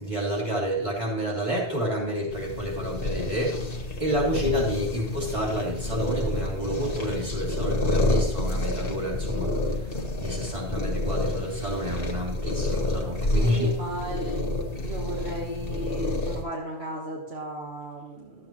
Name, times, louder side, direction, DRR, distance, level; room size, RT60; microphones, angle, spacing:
voice 1, 0.0-13.7, equal, 30° right, -4 dB, 3.0 m, -29 dB
sound 1, 2.3-16.4, left 2 dB, 55° left, 1.5 m, -29 dB
voice 2, 13.3-18.5, right 2 dB, 65° right, -2 dB, 1.7 m, -35 dB
12.0 x 8.4 x 3.0 m, 0.84 s
omnidirectional pair, 1.2 m